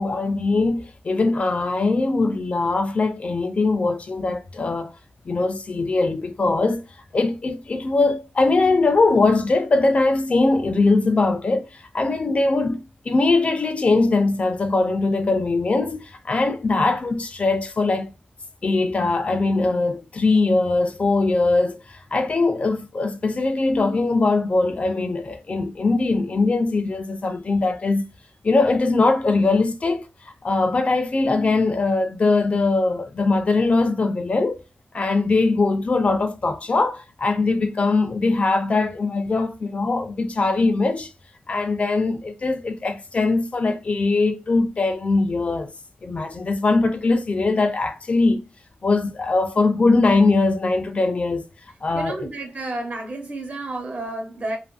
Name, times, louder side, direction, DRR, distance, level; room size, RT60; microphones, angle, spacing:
voice 1, 0.0-4.9 5.3-6.8 7.1-18.1 18.6-28.1 28.4-30.1 30.4-34.6 34.9-41.1 41.5-45.7 46.0-48.4 48.8-51.5 51.8-52.3, left 3 dB, 45° left, 0.4 m, -21 dB
voice 2, 51.9-54.6, right 2 dB, 50° right, 0.9 m, -30 dB
2.9 x 2.5 x 2.3 m
wide cardioid pair, 120°, 3 cm